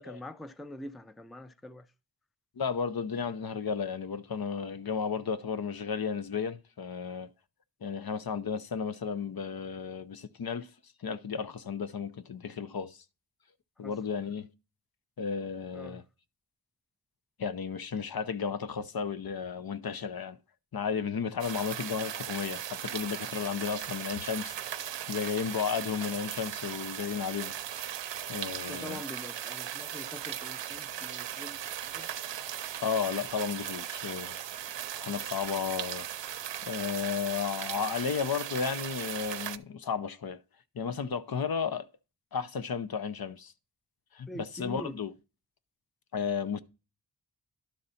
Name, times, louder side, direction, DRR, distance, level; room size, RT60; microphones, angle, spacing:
voice 1, 0.0-1.9 13.8-14.0 15.7-16.0 28.7-32.1 44.3-45.0, equal, ahead, 0.4 m, -44 dB
voice 2, 2.6-7.3 7.8-10.7 11.0-13.0 13.8-14.5 15.2-16.0 17.4-20.4 20.7-24.8 25.1-27.5 28.3-29.0 32.8-34.3 35.0-36.1 36.6-40.4 40.7-41.9 42.3-43.5 44.1-45.1 46.1-46.6, left 6 dB, 55° left, 0.7 m, -33 dB
sound 1, 21.4-39.6, right 10 dB, 80° right, 0.6 m, -38 dB
11.5 x 3.9 x 5.6 m
wide cardioid pair, 110°, 42 cm